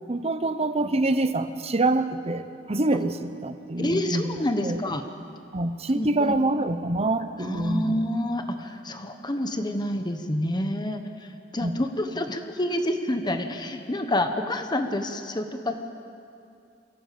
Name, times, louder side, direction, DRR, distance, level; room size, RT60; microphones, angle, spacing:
voice 1, 0.1-4.4 4.6-4.8 5.5-8.0 11.6-11.7, right 2 dB, 35° right, 11 dB, 0.9 m, -26 dB
voice 2, 3.8-5.0 5.9-6.4 7.4-15.7, left 1 dB, 25° left, 6 dB, 1.1 m, -28 dB
24.5 x 17.0 x 7.6 m, 2.5 s
head